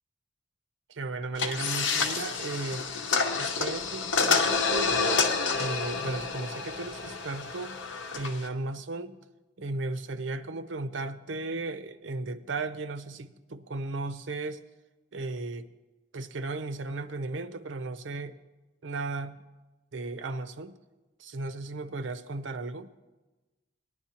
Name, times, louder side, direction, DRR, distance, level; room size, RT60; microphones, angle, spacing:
voice 1, 0.9-2.8 3.4-7.8 8.1-9.2 9.6-14.6 15.1-15.7 16.1-18.4 18.8-19.4 19.9-20.8 21.2-22.9, right 2 dB, 85° right, 11 dB, 0.6 m, -35 dB
sound 1, 1.4-8.5, left 5 dB, 85° left, 0.9 m, -29 dB
19.0 x 10.5 x 2.9 m, 1.1 s
head